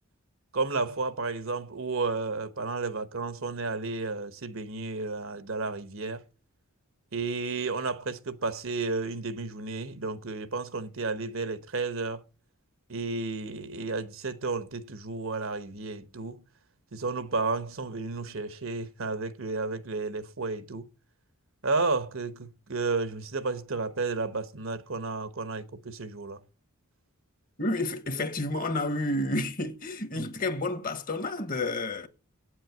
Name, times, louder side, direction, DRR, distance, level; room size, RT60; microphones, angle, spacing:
voice 1, 0.5-6.2 7.1-12.2 12.9-16.4 16.9-20.9 21.6-26.4 30.1-30.2, right 3 dB, 65° right, 1.1 m, -32 dB
voice 2, 27.6-32.1, left 2 dB, 40° left, 1.3 m, -30 dB
8.8 x 7.9 x 9.1 m
head